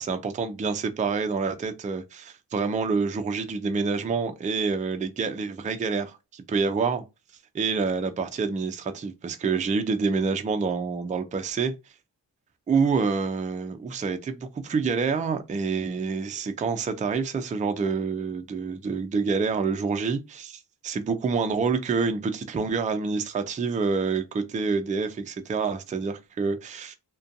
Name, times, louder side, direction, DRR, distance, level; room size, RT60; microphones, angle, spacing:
voice 1, 0.0-7.0 7.5-11.7 12.7-26.9, right 5 dB, 20° right, 0.3 m, -27 dB
2.5 x 2.2 x 2.5 m
wide cardioid pair, 110°, 41 cm